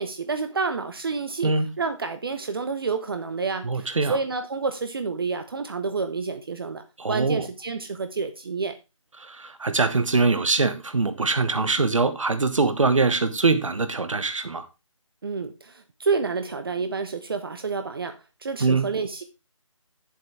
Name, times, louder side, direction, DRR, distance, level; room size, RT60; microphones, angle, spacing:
voice 1, 0.0-8.7 15.2-18.1 18.4-19.2, right 4 dB, 45° right, 0.8 m, -29 dB
voice 2, 3.6-4.2 7.0-7.5 9.2-14.7 18.6-18.9, right 3 dB, 70° right, 1.4 m, -23 dB
9.2 x 7.5 x 3.4 m
figure-of-eight pair, 160°, 17 cm